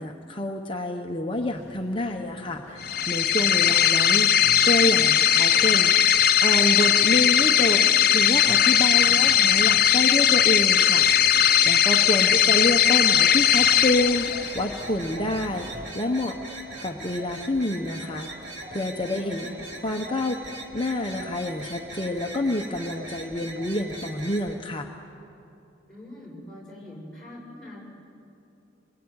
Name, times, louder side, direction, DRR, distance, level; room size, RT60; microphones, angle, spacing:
voice 1, 0.0-5.9 6.4-7.8 8.1-11.1 11.6-14.3 14.5-15.7 15.9-16.4 16.8-20.4 20.7-24.9, left 1 dB, 25° left, 2 dB, 1.0 m, -28 dB
sound 1, 1.4-15.9, right 1 dB, 40° right, 2.3 m, -44 dB
voice 2, 2.0-2.4 3.6-3.8 8.9-9.3 12.2-12.4 25.9-27.8, left 1 dB, ahead, -3 dB, 7.1 m, -43 dB
sound 2, 2.8-14.7, left 9 dB, 50° left, 0.6 m, -19 dB
sound 3, 13.9-24.5, right 1 dB, 70° right, 3.2 m, -40 dB
27.0 x 22.0 x 9.7 m, 2.8 s
head